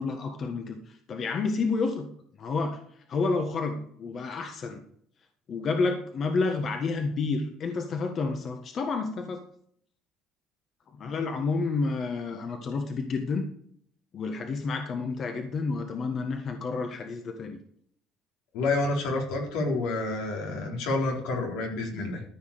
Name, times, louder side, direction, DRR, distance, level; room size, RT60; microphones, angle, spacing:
voice 1, 0.0-2.1 2.4-2.8 3.1-4.8 5.5-9.4 10.9-13.5 14.1-17.6, left 4 dB, 40° left, 5 dB, 1.5 m, -30 dB
voice 2, 18.5-22.2, left 2 dB, 85° left, 0 dB, 4.0 m, -29 dB
14.0 x 5.8 x 6.7 m, 0.64 s
cardioid pair, 115°, 0 cm